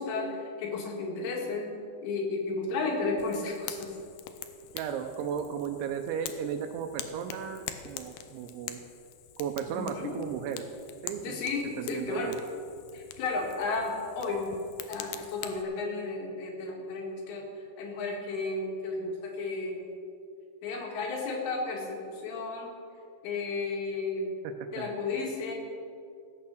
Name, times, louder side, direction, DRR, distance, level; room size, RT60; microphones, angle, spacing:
voice 1, 0.0-1.7 2.0-4.0 9.7-10.1 11.2-12.3 12.9-14.6 14.9-19.9 20.6-22.7 23.2-24.3 24.7-25.5, left 3 dB, 70° left, 0 dB, 4.1 m, -33 dB
Fire, 3.2-15.6, left 10 dB, 90° left, 2.2 m, -45 dB
voice 2, 4.7-8.8 9.4-10.7 11.0-11.4 11.8-12.4 24.4-24.9, right 8 dB, 85° right, 5 dB, 3.0 m, -35 dB
17.0 x 8.7 x 6.4 m, 2.4 s
omnidirectional pair, 5.4 m